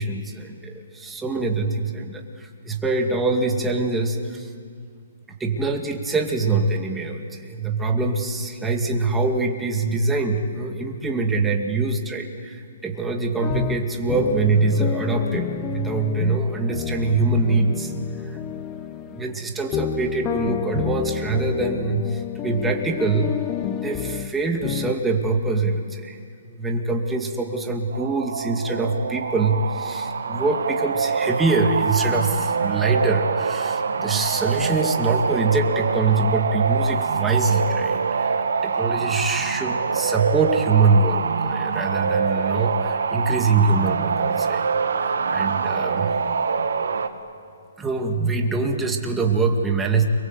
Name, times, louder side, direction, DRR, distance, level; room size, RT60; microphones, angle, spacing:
voice 1, 0.0-4.5 5.4-17.9 18.2-18.4 19.1-23.3 23.7-26.2 26.4-44.7 45.0-46.1 47.8-50.1, right 3 dB, 10° right, 1 dB, 2.3 m, -24 dB
sound 1, 13.4-25.0, left 9 dB, 20° left, 1.0 m, -30 dB
sound 2, 27.9-47.1, right 5 dB, 80° right, 1.9 m, -25 dB
29.0 x 23.0 x 8.2 m, 2.2 s
hypercardioid pair, 155°, 0 cm